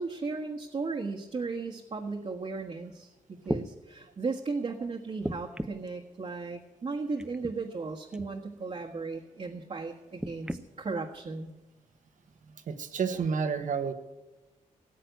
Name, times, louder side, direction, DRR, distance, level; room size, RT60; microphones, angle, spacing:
voice 1, 0.0-11.5 12.9-13.3, right 4 dB, 45° right, 0 dB, 1.5 m, -36 dB
sound 1, 2.9-3.0 3.4-3.7 5.2-5.9 7.2-7.5 8.1-8.3 10.2-10.6 11.5-11.6, right 1 dB, 5° right, 0.7 m, -35 dB
voice 2, 12.5-13.9, right 6 dB, 70° right, 9 dB, 1.4 m, -30 dB
18.0 x 7.7 x 9.3 m, 1.1 s
cardioid pair, 85°, 14 cm